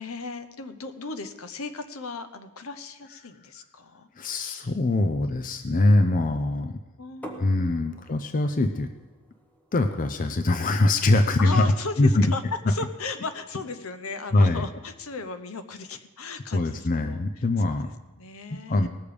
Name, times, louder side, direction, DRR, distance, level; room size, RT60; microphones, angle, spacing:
voice 1, 0.0-4.7 7.0-8.1 11.4-17.2 17.6-18.9, left 3 dB, 70° left, 9 dB, 0.8 m, -36 dB
voice 2, 4.2-6.8 7.4-8.9 9.7-11.7 12.0-12.3 14.3-14.6 16.5-17.9 18.5-18.9, left 2 dB, 40° left, 8 dB, 0.5 m, -23 dB
sound 1, 7.2-12.9, right 1 dB, 5° left, 1.1 m, -49 dB
18.5 x 6.9 x 5.0 m, 1.2 s
head